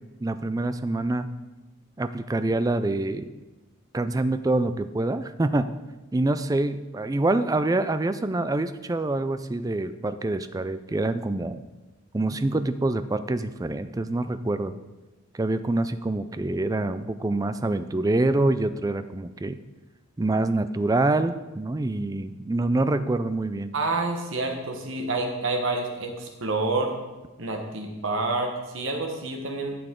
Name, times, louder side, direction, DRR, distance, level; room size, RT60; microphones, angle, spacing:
voice 1, 0.2-1.3 2.0-3.3 3.9-5.7 6.1-11.6 12.1-14.7 15.3-19.6 20.2-23.7, right 2 dB, 15° right, 11 dB, 0.3 m, -26 dB
voice 2, 23.7-26.9 27.4-29.8, right 2 dB, 70° right, 3 dB, 1.4 m, -28 dB
11.0 x 7.0 x 3.8 m, 1.1 s
head